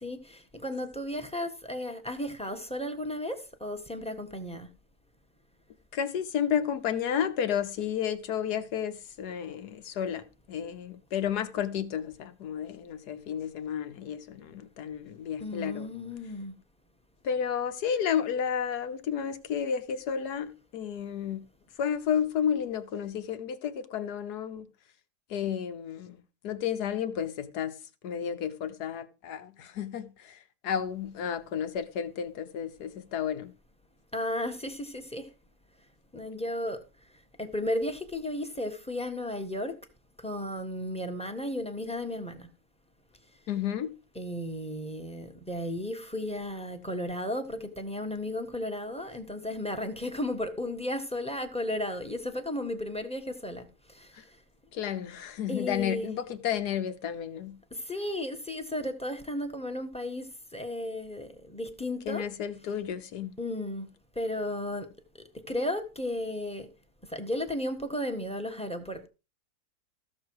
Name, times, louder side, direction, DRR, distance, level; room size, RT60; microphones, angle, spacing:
voice 1, 0.0-4.7 15.4-16.5 34.1-35.3 36.1-36.8 37.4-39.8 40.2-42.5 44.2-53.6 53.9-54.1 55.5-56.1 57.7-62.3 63.4-63.9 64.1-64.9 65.3-66.7 67.1-69.1, left 1 dB, 5° left, 1.2 m, -34 dB
voice 2, 5.9-15.9 17.2-21.4 21.8-24.7 25.3-27.8 28.0-33.5 43.5-43.9 54.1-54.2 54.7-57.6 62.0-63.3, left 8 dB, 75° left, 1.5 m, -32 dB
14.5 x 6.7 x 4.7 m
omnidirectional pair, 1.7 m